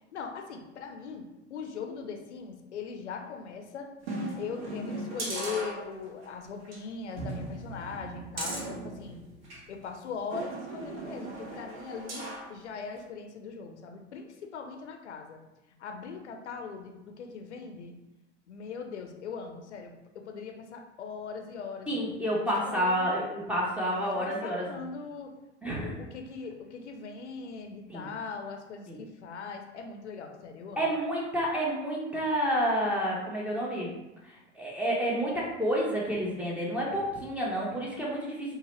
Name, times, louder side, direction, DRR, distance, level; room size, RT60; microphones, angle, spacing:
voice 1, 0.1-3.9 4.4-9.2 9.7-15.4 15.8-17.9 18.5-21.9 22.7-23.3 24.1-25.3 25.7-30.9, left 5 dB, 75° left, 4 dB, 0.5 m, -40 dB
sound 1, 4.0-6.3 6.6-6.8 7.2-9.7 10.3-12.5 13.0-13.1, right 2 dB, 55° right, 0.9 m, -38 dB
voice 2, 21.9-24.7 25.6-25.9 27.9-28.1 28.9-29.0 30.8-33.9 34.5-38.6, equal, 5° right, -5 dB, 0.6 m, -29 dB
2.8 x 2.1 x 3.1 m, 1.0 s
figure-of-eight pair, 85°, 35 cm